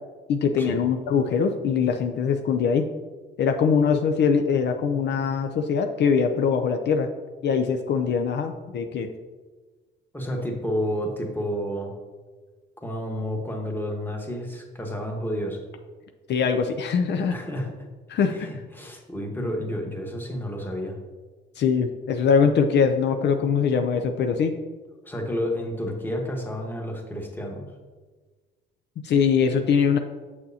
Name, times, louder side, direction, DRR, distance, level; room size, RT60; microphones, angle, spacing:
voice 1, 0.3-2.8 3.4-7.1 7.4-9.1 16.3-17.3 18.1-18.5 21.6-24.5 29.0-30.0, left 6 dB, 60° left, 5 dB, 0.5 m, -22 dB
voice 2, 10.1-12.0 12.8-15.6 17.3-17.7 18.3-21.0 25.0-27.6, equal, 10° left, 1 dB, 1.3 m, -30 dB
7.1 x 6.4 x 2.8 m, 1.4 s
cardioid pair, 90°, 20 cm